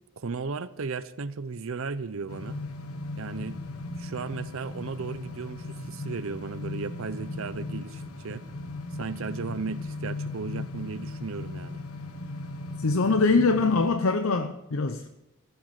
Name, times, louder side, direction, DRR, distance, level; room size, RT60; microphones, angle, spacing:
voice 1, 0.2-2.6 3.2-3.6 4.0-8.4 8.9-11.8, right 4 dB, 65° right, 0.6 m, -35 dB
sound 1, 2.3-13.9, left 2 dB, 85° left, 1.2 m, -37 dB
voice 2, 12.8-15.1, left 3 dB, 70° left, 0.7 m, -23 dB
14.5 x 7.9 x 7.5 m
head